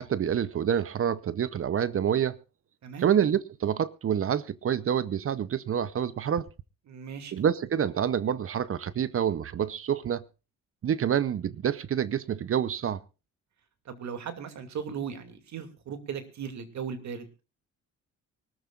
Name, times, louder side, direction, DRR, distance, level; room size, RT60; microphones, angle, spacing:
voice 1, 0.0-2.4 3.0-6.5 7.3-10.2 10.8-13.0, right 9 dB, 45° right, 0.8 m, -27 dB
voice 2, 6.9-7.4 13.8-17.4, right 7 dB, 65° right, 2.6 m, -37 dB
24.0 x 13.5 x 2.5 m
cardioid pair, 90°, 30 cm